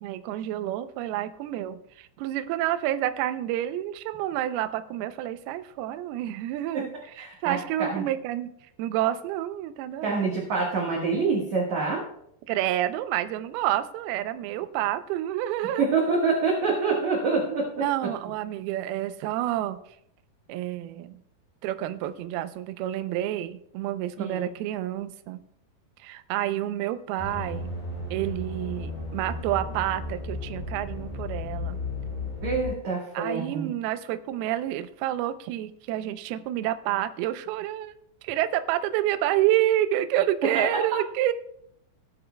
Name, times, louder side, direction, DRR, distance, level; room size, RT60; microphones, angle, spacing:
voice 1, 0.0-6.9 7.2-8.5 8.8-10.2 12.5-15.9 17.8-19.8 20.5-21.2 21.6-25.4 26.0-27.7 28.1-31.8 33.1-37.9 38.2-41.3, right 13 dB, 80° right, 10 dB, 2.3 m, -29 dB
voice 2, 7.2-8.0 10.0-12.0 15.8-17.8 24.2-24.5 32.4-33.7 40.4-40.7, right 4 dB, 55° right, -3 dB, 2.2 m, -26 dB
sound 1, 27.2-32.7, left 2 dB, 55° left, 5.6 m, -34 dB
18.0 x 10.0 x 2.2 m, 0.72 s
omnidirectional pair, 5.1 m